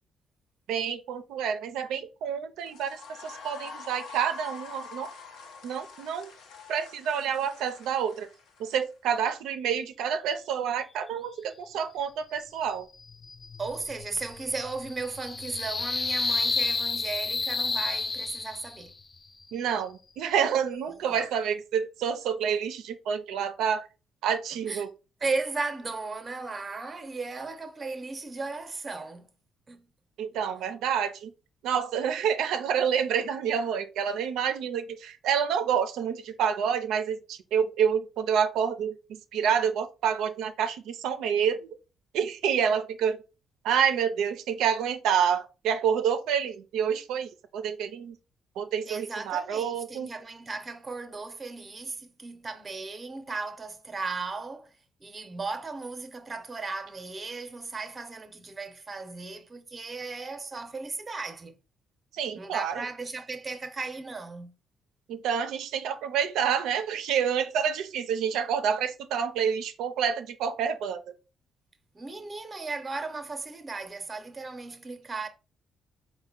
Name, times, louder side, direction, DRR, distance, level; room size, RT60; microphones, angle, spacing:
voice 1, 0.7-5.1 5.6-6.3 6.7-8.3 8.6-12.9 19.5-23.9 24.2-24.9 30.2-31.3 31.6-41.7 42.1-43.2 43.6-48.2 48.6-50.1 62.1-62.9 65.1-71.1, right 8 dB, 85° right, 0.4 m, -28 dB
sound 1, 2.6-8.9, left 4 dB, 80° left, 0.8 m, -45 dB
sound 2, 12.9-18.9, left 3 dB, 30° left, 0.3 m, -31 dB
voice 2, 13.6-18.9 20.8-21.1 24.7-24.9 25.2-29.3 29.7-29.9 48.9-54.7 55.0-61.6 62.3-64.6 71.9-75.3, right 3 dB, 30° right, 0.7 m, -36 dB
4.2 x 2.1 x 3.8 m
cardioid pair, 90°, 0 cm